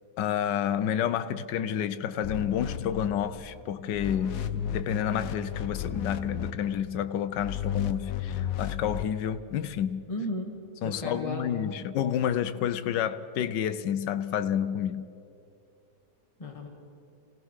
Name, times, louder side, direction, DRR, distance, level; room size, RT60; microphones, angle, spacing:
voice 1, 0.2-10.0 10.8-15.1, left 9 dB, 85° left, 1.4 m, -30 dB
sound 1, 2.2-3.6 3.9-6.8 7.4-9.1, left 8 dB, 60° left, 1.2 m, -34 dB
voice 2, 10.1-10.5 10.8-11.7 16.4-16.7, left 1 dB, 20° left, 1.9 m, -34 dB
27.5 x 18.0 x 6.4 m
omnidirectional pair, 1.8 m